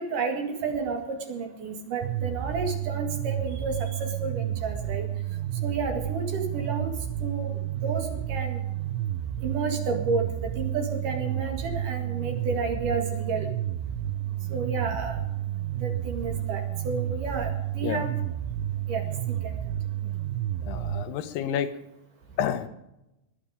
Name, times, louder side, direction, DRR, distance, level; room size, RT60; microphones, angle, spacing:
voice 1, 0.0-5.1 5.6-6.9 7.2-8.6 9.4-13.5 14.5-15.2 15.8-18.2 18.9-19.5, right 4 dB, 55° right, 4 dB, 3.3 m, -31 dB
sound 1, 2.0-21.0, right 12 dB, 80° right, 2.6 m, -31 dB
voice 2, 20.6-21.7 22.4-22.7, left 9 dB, 80° left, 10 dB, 2.9 m, -29 dB
22.0 x 10.0 x 5.0 m, 0.91 s
omnidirectional pair, 4.7 m